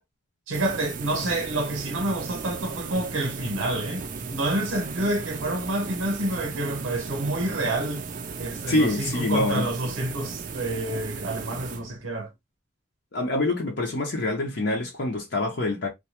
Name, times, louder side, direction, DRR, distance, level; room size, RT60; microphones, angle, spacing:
sound 1, 0.5-12.2, right 5 dB, 40° right, 0.4 m, -36 dB
voice 1, 0.5-8.1 8.4-12.3, right 1 dB, 90° right, 0.7 m, -28 dB
voice 2, 8.7-9.7 13.1-15.9, left 2 dB, 60° left, 0.7 m, -25 dB
2.6 x 2.2 x 2.8 m
head